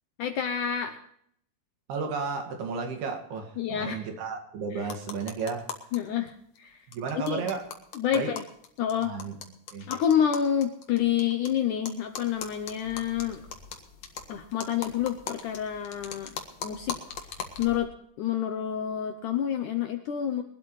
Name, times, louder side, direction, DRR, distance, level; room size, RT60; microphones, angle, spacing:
voice 1, 0.2-1.0 3.6-4.0 4.7-4.8 5.9-6.8 7.3-7.4 8.0-8.4 8.8-9.1 9.9-13.4 14.3-16.4 16.6-17.0 17.6-17.9 18.2-20.4, left 9 dB, 75° left, 7 dB, 1.9 m, -28 dB
voice 2, 1.9-5.7 6.9-7.7 8.1-8.3 9.0-9.3 9.7-9.9, right 5 dB, 75° right, 3 dB, 4.0 m, -33 dB
sound 1, 4.8-6.0 6.3-6.4 6.6-6.7 6.9-11.5 11.8-17.8, left 6 dB, 55° left, 2.2 m, -40 dB
22.5 x 12.0 x 3.2 m, 0.67 s
omnidirectional pair, 4.5 m